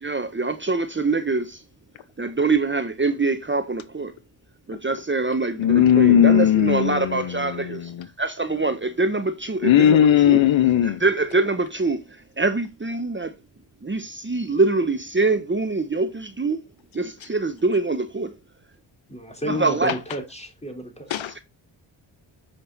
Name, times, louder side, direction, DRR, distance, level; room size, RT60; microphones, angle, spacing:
voice 1, 0.0-1.6 2.2-4.1 4.7-7.9 8.2-10.4 10.8-13.3 13.8-16.6 16.9-18.3 19.5-19.9, right 3 dB, 25° right, 1.2 m, -24 dB
voice 2, 5.6-8.1 9.6-11.0 21.1-21.4, left 10 dB, 65° left, 0.9 m, -18 dB
voice 3, 19.1-21.1, equal, 15° left, 3.8 m, -31 dB
7.9 x 5.2 x 4.2 m
supercardioid pair, 45°, 49 cm